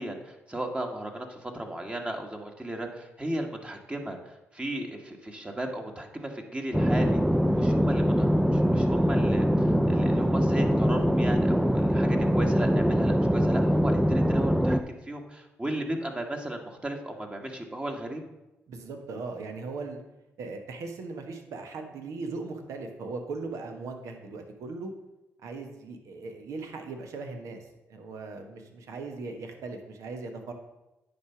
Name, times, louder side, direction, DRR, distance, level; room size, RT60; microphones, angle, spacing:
voice 1, 0.0-7.2 7.5-18.2, right 1 dB, 20° right, 3 dB, 1.5 m, -35 dB
sound 1, 6.7-14.8, equal, 5° right, 0.5 m, -23 dB
voice 2, 18.7-20.0 20.4-24.9 25.4-30.5, right 3 dB, 70° right, 5 dB, 1.1 m, -38 dB
9.3 x 3.4 x 5.8 m, 0.97 s
supercardioid pair, 50°, 6 cm